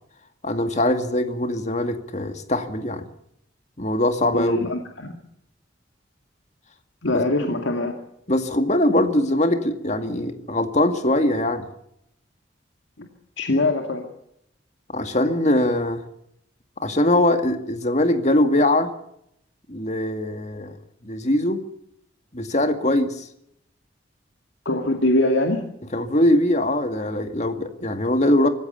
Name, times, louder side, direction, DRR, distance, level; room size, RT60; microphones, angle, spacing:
voice 1, 0.4-3.1 3.8-4.7 7.1-7.2 8.3-11.7 14.9-16.0 16.8-18.9 19.7-20.7 21.0-21.6 22.3-23.3 25.9-28.5, left 1 dB, 40° left, 7 dB, 2.2 m, -21 dB
voice 2, 4.3-5.1 7.0-7.9 13.0-13.1 13.4-14.1 24.7-25.6, left 2 dB, 85° left, 3 dB, 2.3 m, -23 dB
25.0 x 15.5 x 6.9 m, 0.76 s
head